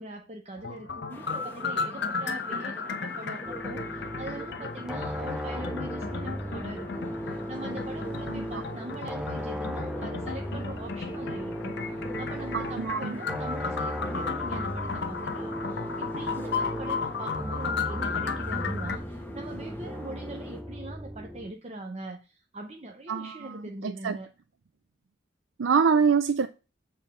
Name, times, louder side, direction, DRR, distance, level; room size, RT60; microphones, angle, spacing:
voice 1, 0.0-11.8 12.2-24.3, right 2 dB, 35° right, 0.9 m, -42 dB
sound 1, 0.6-19.0, left 5 dB, 65° left, 1.0 m, -35 dB
sound 2, 1.1-20.6, right 1 dB, 10° left, 1.2 m, -44 dB
sound 3, 3.4-21.5, equal, 5° right, 0.6 m, -36 dB
voice 2, 12.5-13.1 23.1-24.2 25.6-26.5, right 6 dB, 75° right, 0.5 m, -25 dB
7.3 x 4.5 x 6.7 m
head